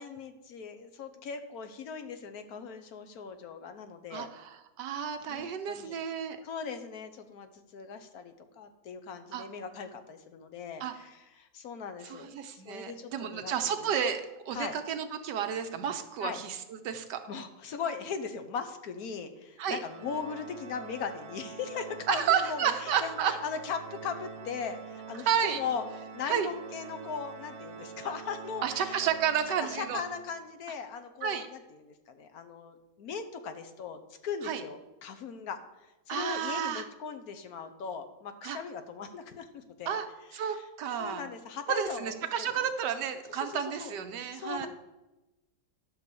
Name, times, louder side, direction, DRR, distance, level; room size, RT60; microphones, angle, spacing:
voice 1, 0.0-4.3 5.3-6.0 6.4-13.9 14.5-14.8 16.2-16.4 17.3-25.9 26.1-29.0 29.6-35.6 36.1-40.0 40.3-40.6 41.0-42.7 43.3-43.9 44.3-44.7, left 6 dB, 65° left, 8 dB, 1.2 m, -39 dB
voice 2, 4.1-6.4 9.3-9.5 10.8-10.9 12.0-16.6 16.8-17.2 19.6-19.8 22.1-23.3 25.3-25.6 26.3-26.5 28.6-30.0 31.2-31.5 34.4-34.6 36.1-36.9 38.4-38.6 39.9-40.1 40.3-41.2 41.7-44.7, right 8 dB, 85° right, 8 dB, 1.4 m, -31 dB
Organ, 19.8-30.6, right 5 dB, 45° right, 1.0 m, -45 dB
11.0 x 3.9 x 6.8 m, 1.0 s
omnidirectional pair, 1.8 m